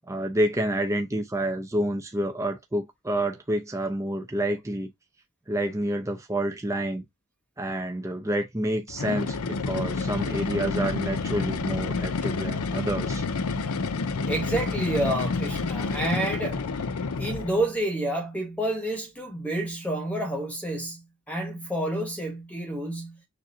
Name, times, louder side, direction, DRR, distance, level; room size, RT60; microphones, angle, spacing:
voice 1, 0.1-4.9 5.5-7.0 7.6-13.2, right 1 dB, 15° right, 0.5 m, -28 dB
sound 1, 8.9-17.7, left 4 dB, 75° left, 0.6 m, -29 dB
voice 2, 14.2-16.7 17.2-23.2, right 1 dB, 5° left, 1.1 m, -29 dB
6.6 x 2.6 x 2.7 m
head